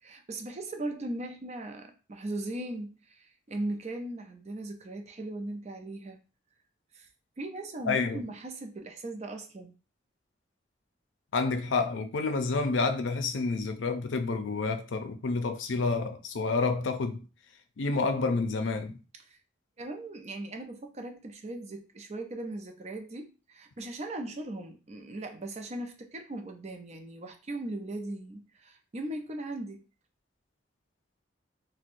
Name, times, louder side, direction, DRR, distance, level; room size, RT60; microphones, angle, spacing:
voice 1, 0.0-6.2 6.9-7.1 7.4-9.7 19.2-19.4 19.8-29.8, right 2 dB, 35° right, 0.5 m, -38 dB
voice 2, 7.8-8.2 11.3-17.2 17.8-19.0, left 4 dB, 85° left, 0.5 m, -29 dB
4.3 x 2.1 x 2.6 m
head